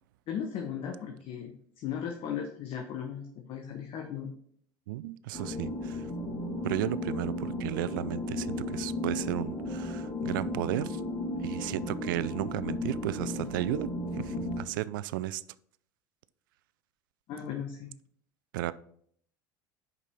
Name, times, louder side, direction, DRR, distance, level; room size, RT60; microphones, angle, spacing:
voice 1, 0.3-4.3 17.3-17.9, left 8 dB, 55° left, 1.0 m, -37 dB
voice 2, 4.9-6.1 6.6-11.0 11.4-15.4 18.5-18.7, right 15 dB, 80° right, 0.4 m, -34 dB
sound 1, 5.3-14.6, left 1 dB, 35° left, 2.8 m, -35 dB
5.4 x 5.3 x 5.5 m
hypercardioid pair, 85°, 11 cm